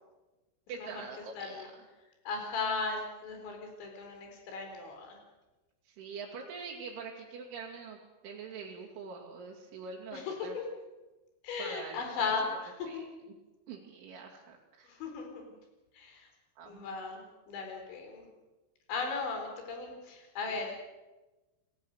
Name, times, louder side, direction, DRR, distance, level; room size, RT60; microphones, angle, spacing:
voice 1, 0.7-1.6 5.9-10.6 11.6-13.0 13.7-14.9 16.6-16.8, right 5 dB, 70° right, -4 dB, 5.2 m, -44 dB
voice 2, 1.4-1.7 2.3-5.2 10.1-10.6 11.4-13.0 14.9-15.3 15.9-16.3 16.6-18.3 18.9-20.7, left 4 dB, 65° left, 3 dB, 6.2 m, -37 dB
29.5 x 19.5 x 6.6 m, 1.1 s
omnidirectional pair, 5.7 m